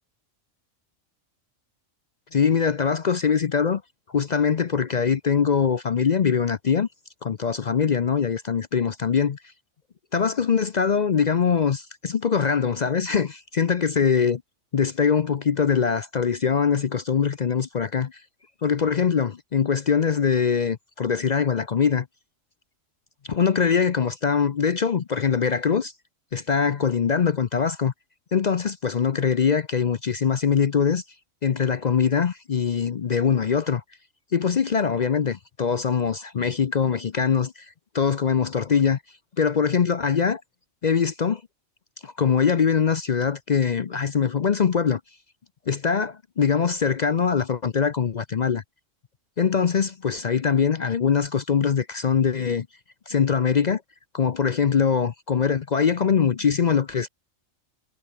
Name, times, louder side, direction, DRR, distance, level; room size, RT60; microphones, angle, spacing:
voice 1, 2.3-3.8 4.1-6.9 7.2-9.4 10.1-14.4 14.7-18.2 18.6-22.1 23.2-25.9 26.3-27.9 28.3-31.0 31.4-33.8 34.3-39.0 39.4-40.4 40.8-41.4 42.0-45.0 45.7-48.6 49.4-52.7 53.1-53.8 54.1-57.1, left 6 dB, 50° left, 0.5 m, -22 dB
omnidirectional pair, 1.4 m